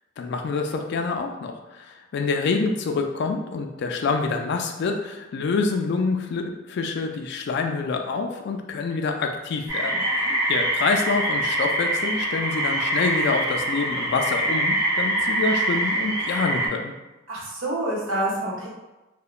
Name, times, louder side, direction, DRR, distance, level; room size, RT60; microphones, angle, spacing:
voice 1, 0.2-10.0 10.5-16.9, left 4 dB, 60° left, 4 dB, 0.3 m, -26 dB
sound 1, 9.7-16.7, right 1 dB, 15° right, 0.5 m, -24 dB
voice 2, 10.0-10.3 17.3-18.7, right 1 dB, 75° right, -4 dB, 0.8 m, -28 dB
2.8 x 2.1 x 2.3 m, 1.0 s
head